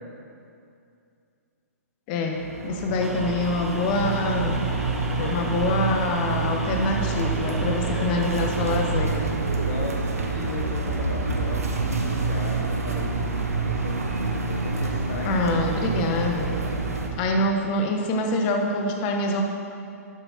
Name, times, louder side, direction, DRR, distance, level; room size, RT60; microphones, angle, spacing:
voice 1, 2.1-4.6 5.3-9.4 15.2-16.6 17.2-19.4, left 2 dB, 35° left, 3 dB, 1.4 m, -25 dB
sound 1, 2.3-17.1, right 4 dB, 70° right, 1.5 m, -27 dB
sound 2, 3.0-9.0, right 1 dB, 5° right, 0.9 m, -38 dB
voice 2, 5.1-5.5 7.8-8.7 9.6-15.9 16.3-16.4, left 3 dB, 55° left, 0 dB, 1.0 m, -36 dB
12.5 x 9.0 x 4.4 m, 2.5 s
figure-of-eight pair, 115°, 8 cm